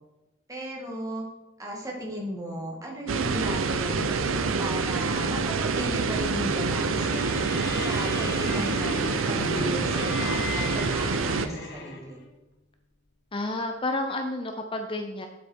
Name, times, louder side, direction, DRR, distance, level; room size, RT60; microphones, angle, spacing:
voice 1, 0.5-1.3 1.6-7.2 7.8-12.2, equal, 15° right, -1 dB, 2.1 m, -35 dB
sound 1, 3.1-11.5, right 4 dB, 85° right, 0.7 m, -26 dB
sound 2, 7.0-12.3, left 4 dB, 60° left, 1.4 m, -37 dB
voice 2, 13.3-15.3, left 2 dB, 25° left, 5 dB, 0.7 m, -30 dB
8.5 x 8.1 x 4.6 m, 1.0 s
head